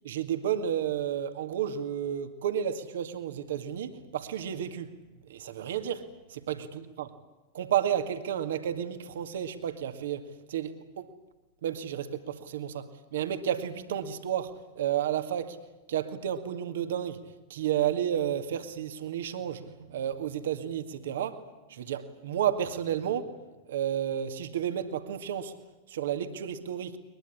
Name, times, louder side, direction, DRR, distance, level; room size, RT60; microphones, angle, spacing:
voice 1, 0.1-4.9 5.2-7.1 7.5-11.1 11.6-15.6 15.9-17.2 17.5-21.4 21.7-23.4 23.7-25.5 25.9-27.0, right 9 dB, 60° right, 2.1 m, -32 dB
22.5 x 22.0 x 9.8 m
figure-of-eight pair, 90°, 0 cm